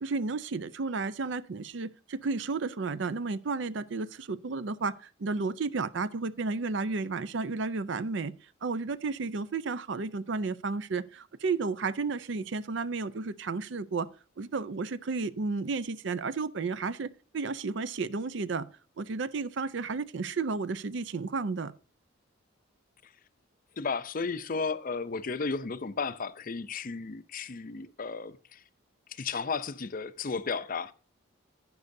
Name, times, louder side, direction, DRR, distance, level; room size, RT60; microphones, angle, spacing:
voice 1, 0.0-8.3 8.6-14.1 14.4-17.1 17.3-18.6 19.0-21.7, right 4 dB, 65° right, 0.5 m, -32 dB
voice 2, 23.8-28.6 29.1-30.9, left 4 dB, 45° left, 0.5 m, -34 dB
11.5 x 9.5 x 2.7 m
head